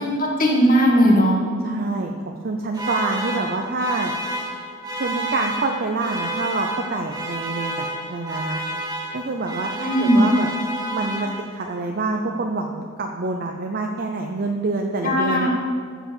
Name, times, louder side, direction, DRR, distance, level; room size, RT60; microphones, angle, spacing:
voice 1, 0.0-1.4 9.8-10.2 15.0-15.5, equal, 40° left, -2 dB, 1.7 m, -17 dB
voice 2, 1.6-4.1 5.0-8.6 9.1-10.5 10.9-15.5, right 3 dB, 45° right, 2 dB, 0.6 m, -26 dB
sound 1, 2.7-11.8, right 1 dB, 20° right, 1.6 m, -30 dB
14.5 x 5.0 x 6.9 m, 2.1 s
head